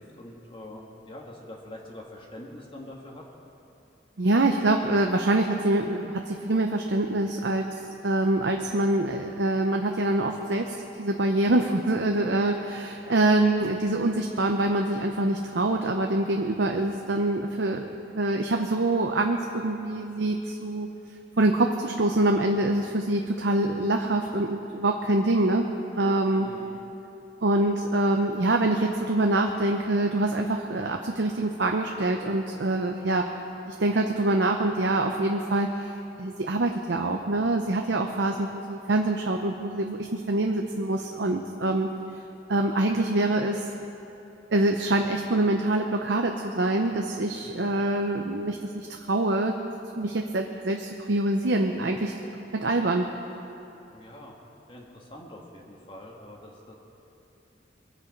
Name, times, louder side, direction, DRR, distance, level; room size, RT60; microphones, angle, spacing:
voice 1, 0.0-3.2 26.4-26.8 47.4-47.7 53.9-54.3 54.7-56.7, left 1 dB, 30° left, -2 dB, 1.5 m, -44 dB
voice 2, 4.2-7.7 8.0-17.9 18.1-20.9 21.4-25.7 25.9-26.5 27.4-33.3 33.7-41.9 42.5-43.7 44.5-49.6 50.0-52.1 52.5-53.1, right 2 dB, 75° right, 3 dB, 0.7 m, -25 dB
22.5 x 8.5 x 5.2 m, 2.9 s
head